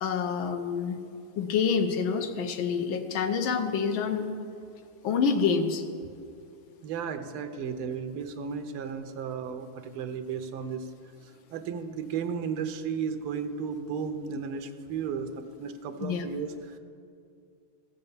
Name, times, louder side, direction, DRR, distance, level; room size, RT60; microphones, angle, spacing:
voice 1, 0.0-1.0 1.4-4.3 5.0-5.8 16.0-16.3, left 6 dB, 70° left, 7 dB, 1.6 m, -27 dB
voice 2, 6.8-10.9 11.5-16.8, right 6 dB, 80° right, 7 dB, 1.6 m, -34 dB
15.0 x 6.7 x 7.1 m, 2.3 s
omnidirectional pair, 2.3 m